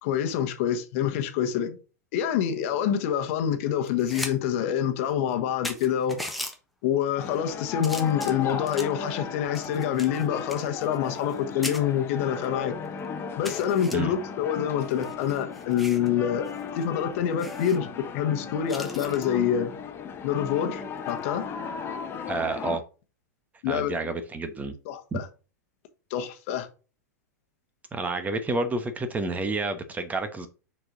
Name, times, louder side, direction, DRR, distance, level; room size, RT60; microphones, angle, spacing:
voice 1, 0.0-1.8 2.1-6.3 6.8-12.7 13.4-16.5 16.7-19.8 20.2-21.4 23.6-23.9 24.8-25.3 26.1-26.7, left 9 dB, 55° left, 1.3 m, -26 dB
sound 1, 3.8-4.3 4.7-4.8 5.3-5.4 5.6-6.5 7.2-7.5 7.8-9.0 9.5-11.4 11.6-11.8 12.4-12.5 12.8-12.9 13.4-13.9 14.8-16.1 16.5-16.6 16.9-17.0 17.4-17.8 18.7-19.3 21.0-21.2, left 1 dB, ahead, 1.4 m, -38 dB
sound 2, 7.2-22.8, left 6 dB, 25° left, 1.1 m, -36 dB
voice 2, 22.3-22.8 23.7-24.7 25.1-25.2 27.9-30.5, right 3 dB, 15° right, 1.1 m, -29 dB
6.5 x 4.6 x 4.0 m
hypercardioid pair, 105°, 9 cm